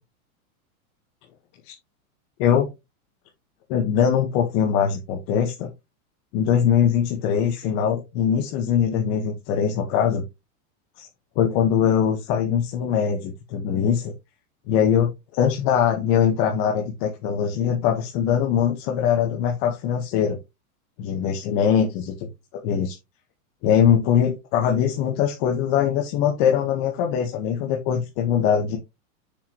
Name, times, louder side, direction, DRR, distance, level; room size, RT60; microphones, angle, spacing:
voice 1, 3.7-5.7 6.3-10.2 11.0-11.1 11.3-14.1 14.7-20.4 21.0-22.1 22.6-22.9 23.6-28.8, left 8 dB, 40° left, 2 dB, 1.5 m, -22 dB
7.5 x 7.0 x 3.1 m, 0.23 s
supercardioid pair, 150°, 43 cm